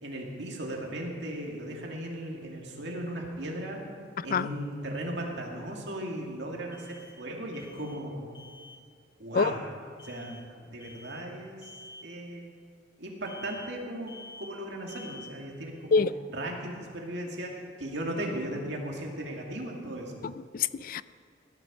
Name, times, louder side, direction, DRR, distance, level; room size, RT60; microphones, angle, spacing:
voice 1, 0.0-3.8 4.2-8.3 9.2-9.6 10.0-11.7 12.0-12.5 13.0-16.0 16.3-17.5 17.8-20.1, right 1 dB, 65° right, 0 dB, 2.3 m, -37 dB
sound 1, 6.7-7.3 7.5-8.1 8.3-8.8 10.0-10.5 10.8-11.3 11.6-12.1 13.3-13.8 14.1-14.6 14.9-15.4, left 2 dB, 25° left, 1.5 m, -49 dB
voice 2, 20.2-21.0, left 5 dB, 50° left, 16 dB, 0.4 m, -26 dB
17.0 x 10.0 x 5.3 m, 2.2 s
head